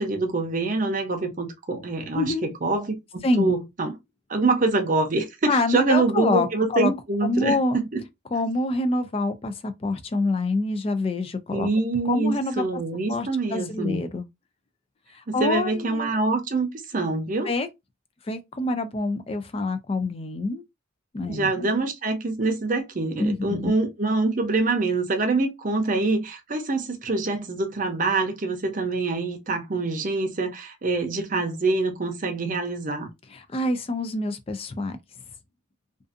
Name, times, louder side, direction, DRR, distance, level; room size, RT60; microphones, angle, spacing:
voice 1, 0.0-4.0 4.3-8.0 11.5-14.0 15.3-17.5 21.3-33.1, right 3 dB, 40° right, 0.6 m, -25 dB
voice 2, 2.1-2.5 3.2-3.6 5.5-6.9 7.2-7.8 8.3-11.7 12.1-12.8 13.1-14.3 15.1-16.1 17.5-17.7 18.3-20.6 21.1-21.7 23.2-23.7 33.3-35.0, left 2 dB, 30° left, 0.3 m, -26 dB
2.5 x 2.4 x 2.4 m
head